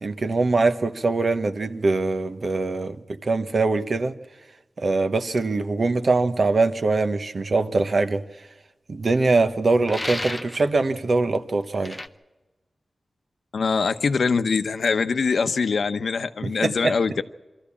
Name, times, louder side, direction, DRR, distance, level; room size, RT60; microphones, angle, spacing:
voice 1, 0.0-4.2 4.8-8.2 8.9-12.0 16.4-16.9, right 3 dB, 55° right, 1.0 m, -23 dB
sound 1, 9.9-10.7 11.8-12.1, left 1 dB, 15° left, 0.8 m, -32 dB
voice 2, 13.5-17.2, left 5 dB, 80° left, 0.8 m, -23 dB
23.5 x 14.0 x 8.5 m
wide cardioid pair, 115°, 0 cm